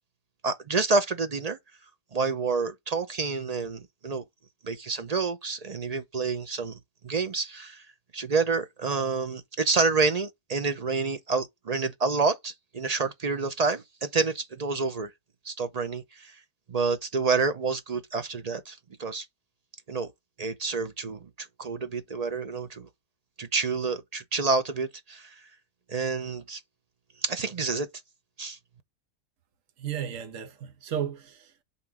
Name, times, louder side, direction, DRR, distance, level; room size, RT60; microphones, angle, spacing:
voice 1, 0.4-1.6 2.1-4.2 4.6-6.8 7.0-7.8 8.1-15.1 15.5-16.3 16.7-19.3 19.9-20.1 20.4-22.9 23.4-25.3 25.9-26.6 27.2-27.9 28.4-28.6, right 4 dB, 45° right, 0.5 m, -28 dB
voice 2, 29.8-31.6, right 9 dB, 70° right, 1.4 m, -34 dB
5.7 x 3.8 x 4.7 m
omnidirectional pair, 1.4 m